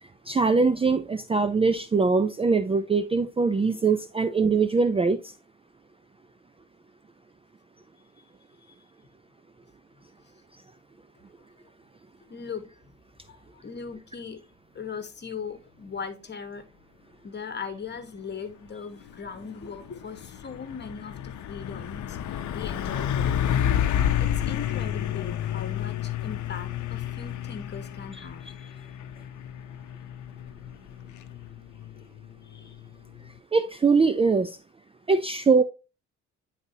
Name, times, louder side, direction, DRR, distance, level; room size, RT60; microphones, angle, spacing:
voice 1, 0.3-5.2 33.5-34.6 35.1-35.6, right 4 dB, 20° right, 0.4 m, -22 dB
voice 2, 12.2-12.7 13.3-14.4 14.7-16.7 17.2-22.2 22.5-23.4 24.2-28.4 32.4-32.8, left 5 dB, 35° left, 1.3 m, -39 dB
Truck, 19.1-33.4, left 10 dB, 70° left, 0.7 m, -30 dB
9.3 x 4.2 x 2.8 m
cardioid pair, 90°, 30 cm